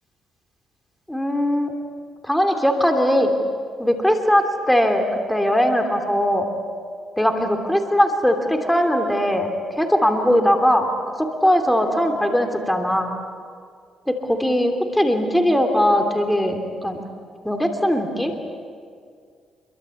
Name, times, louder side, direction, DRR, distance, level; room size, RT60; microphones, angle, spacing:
voice 1, 1.1-1.7 2.2-3.3 3.8-6.5 7.2-10.9 11.2-13.1 14.1-17.0 17.4-18.3, equal, 5° left, 4 dB, 3.1 m, -20 dB
27.5 x 23.5 x 8.4 m, 2.1 s
cardioid pair, 90°, 0 cm